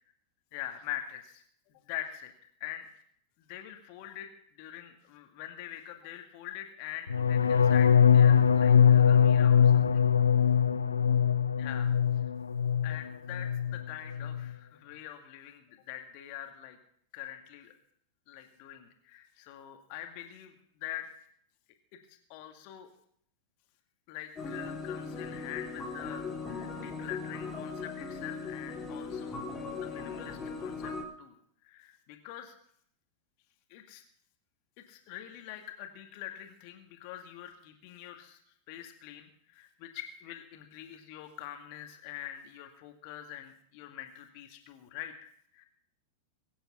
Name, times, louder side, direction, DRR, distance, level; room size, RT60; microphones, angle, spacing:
voice 1, 0.5-1.4 1.7-2.3 2.6-2.9 3.4-4.3 4.6-10.0 11.6-11.9 12.8-16.8 17.1-17.7 18.3-21.1 22.1-22.9 24.1-29.4 29.7-30.9 31.2-31.4 31.6-32.5 33.7-34.0 34.9-38.4 38.7-45.1 45.5-45.6, left 12 dB, 45° left, 6 dB, 2.0 m, -44 dB
sound 1, 7.1-13.0 13.3-13.8 14.1-14.5, left 8 dB, 75° left, 0.7 m, -22 dB
sound 2, 24.4-31.0, left 4 dB, 20° left, 3.2 m, -38 dB
22.5 x 8.7 x 5.6 m, 0.67 s
figure-of-eight pair, 90°, 0 cm